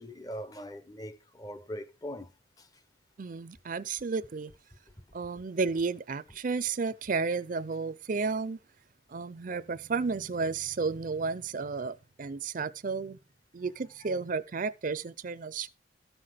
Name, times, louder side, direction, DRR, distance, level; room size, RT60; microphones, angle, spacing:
voice 1, 0.0-2.3 2.6-2.7, equal, 20° left, 0.6 m, -41 dB
voice 2, 3.2-4.5 5.1-8.6 9.1-13.2 13.5-15.7, right 4 dB, 40° right, 0.4 m, -32 dB
13.5 x 5.8 x 5.0 m
head